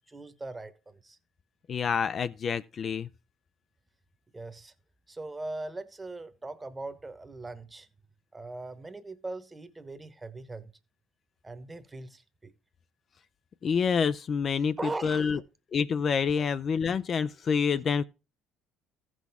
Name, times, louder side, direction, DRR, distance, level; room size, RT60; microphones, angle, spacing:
voice 1, 0.1-1.2 4.3-4.7 5.1-7.9 8.3-10.7 11.4-12.5 14.8-15.4 16.4-16.5, right 2 dB, 15° right, 1.0 m, -40 dB
voice 2, 1.7-3.1 13.6-14.8 15.0-15.4 15.7-18.0, left 6 dB, 40° left, 0.4 m, -27 dB
14.5 x 6.2 x 3.5 m
supercardioid pair, 90°, 0 cm